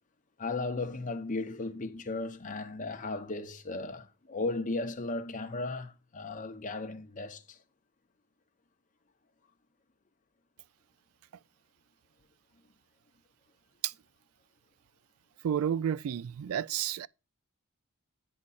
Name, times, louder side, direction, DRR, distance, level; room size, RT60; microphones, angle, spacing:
voice 1, 0.4-7.4, left 3 dB, 35° left, 0.9 m, -35 dB
voice 2, 15.4-17.1, right 9 dB, 65° right, 0.3 m, -31 dB
9.6 x 4.9 x 4.1 m
head